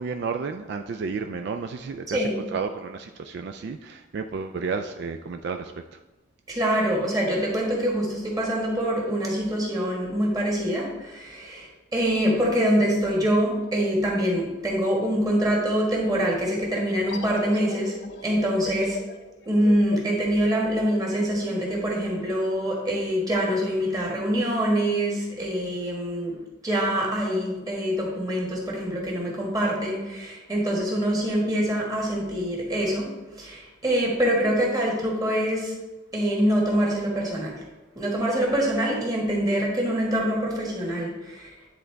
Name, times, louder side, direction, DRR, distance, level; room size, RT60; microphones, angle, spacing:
voice 1, 0.0-6.0, right 5 dB, 60° right, 7 dB, 0.3 m, -32 dB
voice 2, 6.5-19.0 19.4-33.1 33.4-35.7 36.1-37.5 37.9-41.5, equal, 20° right, -2 dB, 1.6 m, -25 dB
sound 1, 17.1-22.4, left 4 dB, 65° left, 0.6 m, -39 dB
9.9 x 3.9 x 3.4 m, 1.1 s
head